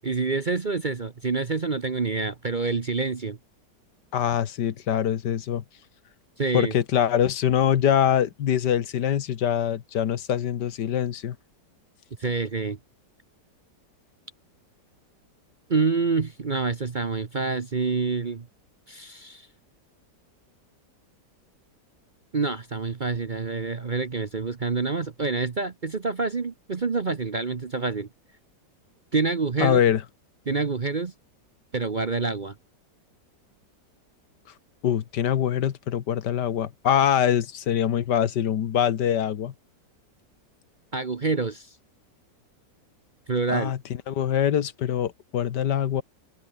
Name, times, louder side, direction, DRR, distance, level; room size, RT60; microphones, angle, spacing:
voice 1, 0.0-3.4 6.4-6.7 12.2-12.8 15.7-18.5 18.9-19.5 22.3-28.1 29.1-29.8 30.5-31.1 31.7-32.5 40.9-41.7 43.3-43.7, right 4 dB, 35° right, 0.9 m, -27 dB
voice 2, 4.1-5.6 6.5-11.4 29.6-30.0 34.8-39.5 43.5-43.8 44.1-46.0, left 9 dB, 70° left, 1.7 m, -24 dB
omnidirectional pair, 1.9 m